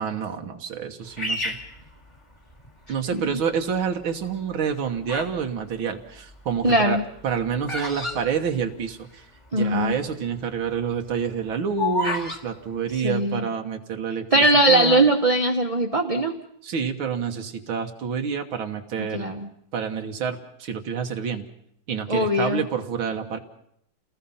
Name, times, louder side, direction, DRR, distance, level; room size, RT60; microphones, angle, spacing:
voice 1, 0.0-1.6 2.9-7.0 7.2-9.3 9.5-15.0 16.6-19.4 19.7-21.5 21.9-23.4, right 6 dB, 85° right, 5 dB, 2.3 m, -28 dB
Bird vocalization bird call bird song, 1.2-2.7 3.3-3.8 4.5-5.4 5.7-9.2 9.5-9.6 9.7-10.1 10.5-12.4, left 2 dB, 15° left, 1.6 m, -31 dB
voice 2, 6.6-7.0 9.5-10.0 13.0-13.5 14.3-16.3 19.1-19.5 22.1-22.7, right 1 dB, 20° right, 2 dB, 1.0 m, -20 dB
29.0 x 19.5 x 5.7 m, 0.70 s
omnidirectional pair, 2.2 m